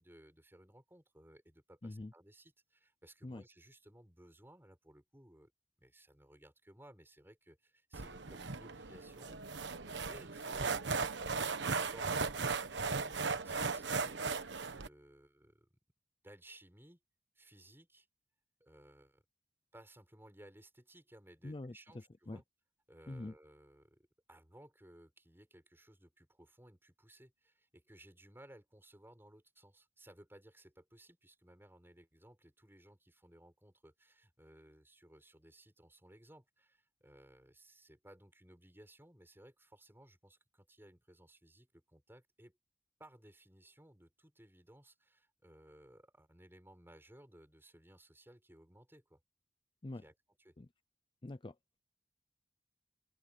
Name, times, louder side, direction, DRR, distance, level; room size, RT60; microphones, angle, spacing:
voice 1, 0.0-5.5 5.8-9.4 9.8-15.8 16.2-17.0 17.3-18.1 18.6-19.2 19.7-22.4 22.9-42.6 43.0-49.2 49.9-50.6, right 1 dB, 15° right, 6.7 m, -60 dB
sound 1, 7.9-14.9, right 4 dB, 85° right, 1.2 m, -37 dB
voice 2, 21.4-21.7 22.3-22.4 23.1-23.3 49.8-50.0 50.6-50.7 51.2-51.6, left 2 dB, 30° left, 0.5 m, -44 dB
open air
head